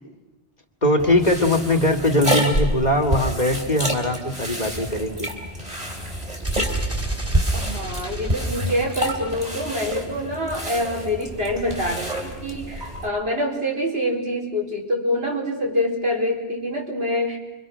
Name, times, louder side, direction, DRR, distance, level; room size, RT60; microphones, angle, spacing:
voice 1, 0.8-5.3, left 1 dB, 40° left, 4 dB, 2.3 m, -21 dB
sound 1, 1.0-13.1, right 1 dB, 35° right, 3.9 m, -28 dB
sound 2, 6.4-10.3, right 1 dB, 15° right, 2.5 m, -31 dB
voice 2, 7.5-17.4, left 1 dB, 65° right, -2 dB, 4.8 m, -26 dB
30.0 x 24.5 x 6.3 m, 1.0 s
omnidirectional pair, 1.1 m